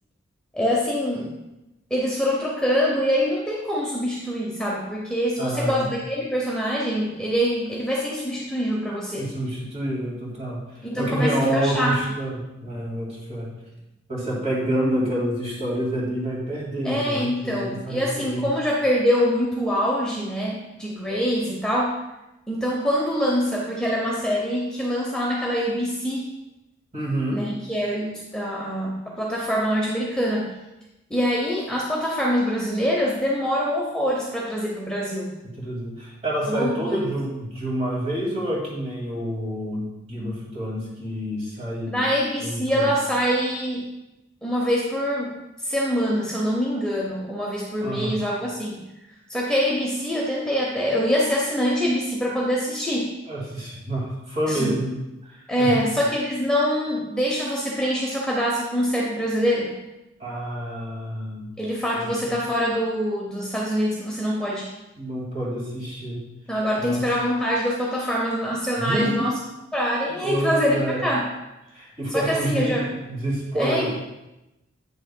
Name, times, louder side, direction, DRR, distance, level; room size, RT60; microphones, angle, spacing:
voice 1, 0.5-1.3 1.9-9.3 10.8-12.0 16.8-21.9 22.5-26.3 27.3-30.5 31.1-35.3 36.5-37.0 41.9-43.9 44.4-45.4 45.6-48.8 49.3-53.1 54.5-54.7 55.5-59.7 61.6-64.7 66.5-69.4 69.7-71.2 72.1-72.8 73.6-74.0, equal, 5° left, -4 dB, 0.7 m, -24 dB
voice 2, 5.4-5.9 9.1-13.5 14.1-18.5 26.9-27.5 35.4-41.9 42.4-42.9 47.8-48.2 53.3-55.8 60.2-61.5 61.9-62.3 65.0-66.2 66.8-67.0 68.8-69.3 70.2-71.1 71.7-74.0, right 1 dB, 30° right, -4 dB, 2.1 m, -28 dB
8.5 x 6.4 x 2.2 m, 0.97 s
head